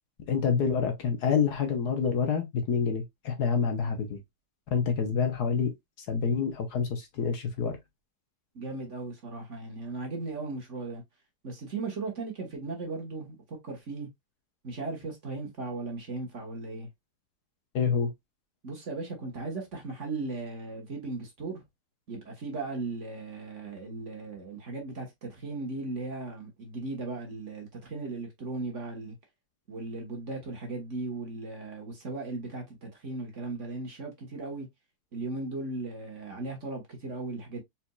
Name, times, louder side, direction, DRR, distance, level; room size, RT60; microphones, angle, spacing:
voice 1, 0.3-4.2 4.7-5.7 6.1-7.8 17.7-18.1, left 6 dB, 65° left, 1.3 m, -27 dB
voice 2, 8.5-11.0 11.4-14.1 14.6-16.9 18.6-21.6 22.1-29.1 29.7-34.7 35.1-37.6, right 3 dB, 45° right, 1.5 m, -37 dB
4.3 x 4.2 x 2.2 m
omnidirectional pair, 2.0 m